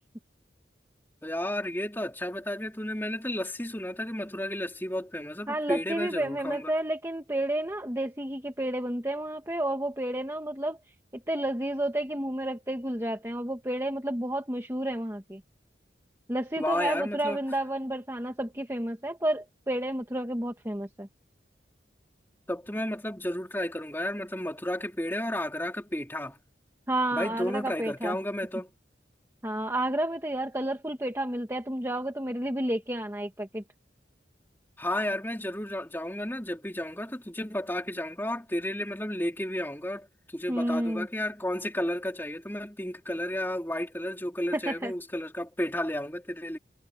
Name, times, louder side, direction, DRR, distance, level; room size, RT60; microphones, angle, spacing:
voice 1, 1.2-6.7 16.6-17.4 22.5-26.4 27.1-28.7 34.8-40.1 40.3-46.6, left 1 dB, 10° left, 3.3 m, -32 dB
voice 2, 5.5-15.4 16.3-21.1 26.9-28.2 29.4-33.6 40.5-41.1 44.5-44.9, right 1 dB, 15° right, 1.5 m, -31 dB
head